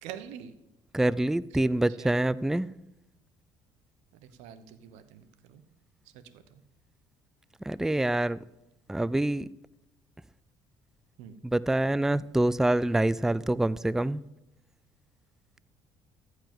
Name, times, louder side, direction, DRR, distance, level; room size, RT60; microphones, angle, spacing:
voice 1, 0.0-0.5 1.7-2.1 4.1-5.6 6.0-6.6 11.2-11.4, right 9 dB, 75° right, 1.0 m, -46 dB
voice 2, 0.9-2.7 7.7-8.4 8.9-9.5 11.4-14.2, right 1 dB, 5° right, 0.4 m, -26 dB
14.5 x 4.9 x 7.7 m
supercardioid pair, 70°, 12 cm